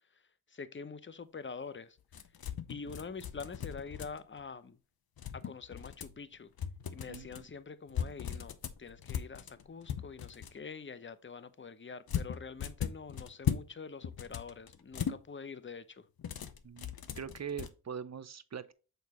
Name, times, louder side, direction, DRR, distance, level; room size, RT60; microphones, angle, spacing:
voice 1, 0.5-2.0 2.7-4.8 5.3-6.5 6.9-16.1, left 5 dB, 30° left, 0.8 m, -45 dB
sound 1, 2.1-4.4 5.2-6.2 6.6-7.4 7.9-10.6 12.1-13.7 14.0-15.2 16.2-17.7, left 8 dB, 70° left, 0.8 m, -38 dB
voice 2, 7.1-7.5 16.6-18.7, right 7 dB, 45° right, 0.7 m, -42 dB
6.8 x 4.6 x 3.0 m
cardioid pair, 45°, 38 cm